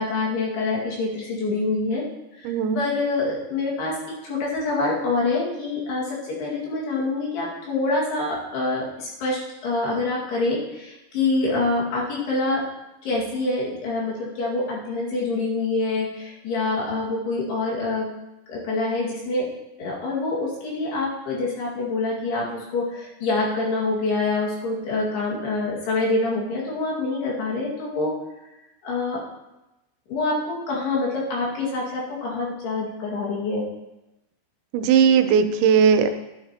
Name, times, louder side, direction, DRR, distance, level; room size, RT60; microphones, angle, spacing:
voice 1, 0.0-2.0 2.4-4.0 4.2-12.6 13.0-18.1 18.5-19.5 19.8-28.1 28.8-29.2 30.1-33.7, left 3 dB, 65° left, -5 dB, 4.0 m, -26 dB
voice 2, 2.4-2.8 34.7-36.1, right 7 dB, 90° right, 8 dB, 3.1 m, -18 dB
12.5 x 9.1 x 2.9 m, 0.98 s
omnidirectional pair, 5.1 m